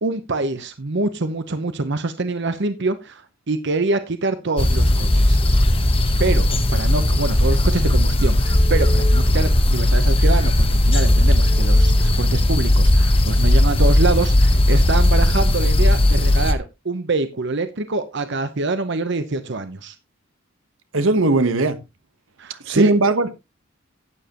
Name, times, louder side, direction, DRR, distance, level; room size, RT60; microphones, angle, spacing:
voice 1, 0.0-5.4 6.2-19.9 22.4-22.9, right 3 dB, 60° right, 0.9 m, -25 dB
sound 1, 4.6-16.5, left 1 dB, 30° left, 1.0 m, -16 dB
voice 2, 20.9-21.8 22.6-23.3, right 2 dB, 80° right, 1.2 m, -18 dB
12.0 x 9.1 x 3.0 m
head